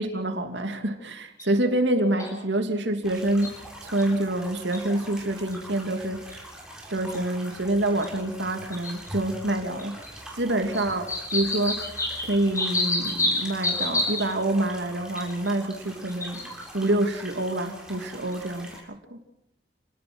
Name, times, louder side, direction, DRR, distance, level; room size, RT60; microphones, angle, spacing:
voice 1, 0.0-3.6 3.8-6.5 6.9-11.1 11.3-12.0 12.2-16.4 16.7-19.2, right 1 dB, 90° right, 5 dB, 2.8 m, -27 dB
sound 1, 1.4-1.5 2.2-2.3 3.2-3.5 4.0-4.1 4.7-4.8 5.5-5.6 6.3-6.4 7.1-7.2 8.0-8.1 8.7-9.1 9.8-10.1 10.7-14.2 15.2-15.5 16.1-16.7 18.3-18.4, left 2 dB, 20° left, 7.7 m, -28 dB
sound 2, 3.0-18.8, right 1 dB, 5° right, 7.4 m, -43 dB
29.5 x 19.5 x 6.3 m, 0.75 s
head